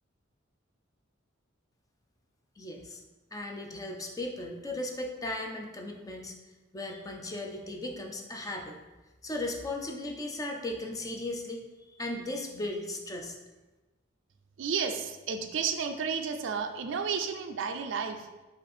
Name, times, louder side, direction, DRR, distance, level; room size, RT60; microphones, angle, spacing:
voice 1, 2.6-3.0 3.3-6.3 6.7-8.8 9.2-13.4, left 1 dB, 15° left, 2 dB, 0.4 m, -37 dB
voice 2, 14.6-18.3, right 6 dB, 60° right, 6 dB, 0.4 m, -32 dB
5.0 x 2.5 x 4.2 m, 1.1 s
head